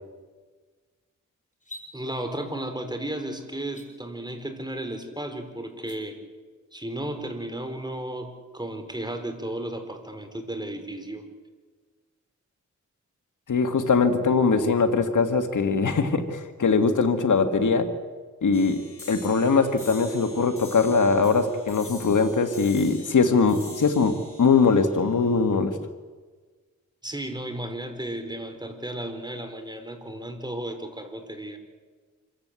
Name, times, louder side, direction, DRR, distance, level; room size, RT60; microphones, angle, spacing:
sound 1, 1.5-1.9 3.6-3.9 5.7-6.0, left 1 dB, 25° left, 6.4 m, -43 dB
voice 1, 1.9-6.2 6.7-11.2 27.0-31.6, right 1 dB, 15° right, 6 dB, 4.4 m, -34 dB
voice 2, 13.5-17.9 18.4-18.8 19.1-25.8, left 4 dB, 75° left, 8 dB, 1.8 m, -21 dB
sound 2, 18.5-25.5, left 3 dB, 45° left, 6.8 m, -45 dB
27.0 x 15.5 x 8.3 m, 1.4 s
cardioid pair, 65°, 31 cm